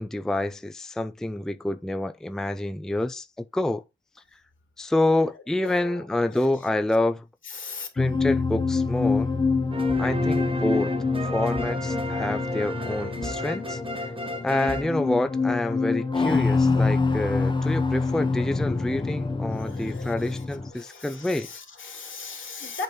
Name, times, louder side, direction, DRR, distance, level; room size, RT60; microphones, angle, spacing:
voice 1, 0.0-3.8 4.8-7.2 7.9-9.3 10.0-10.9 11.2-13.8 14.4-21.5, left 1 dB, 5° left, 0.4 m, -27 dB
voice 2, 5.6-6.5 7.4-7.9 19.3-22.8, left 4 dB, 75° left, 2.5 m, -39 dB
sound 1, 8.0-20.7, left 4 dB, 25° left, 0.8 m, -26 dB
sound 2, 9.7-15.6, equal, 25° right, 1.3 m, -33 dB
8.0 x 3.4 x 5.3 m
wide cardioid pair, 110°, 20 cm